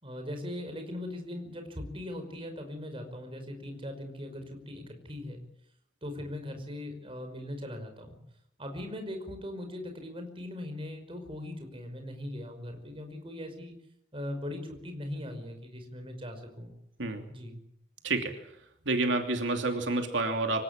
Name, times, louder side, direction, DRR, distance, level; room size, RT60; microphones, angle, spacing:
voice 1, 0.0-5.4 6.0-8.2 8.6-13.7 14.1-16.7 17.3-17.6, left 1 dB, 30° right, 6 dB, 5.5 m, -40 dB
voice 2, 18.0-18.4 18.8-20.6, right 2 dB, 80° right, 4 dB, 2.9 m, -29 dB
25.5 x 17.0 x 8.9 m, 0.76 s
head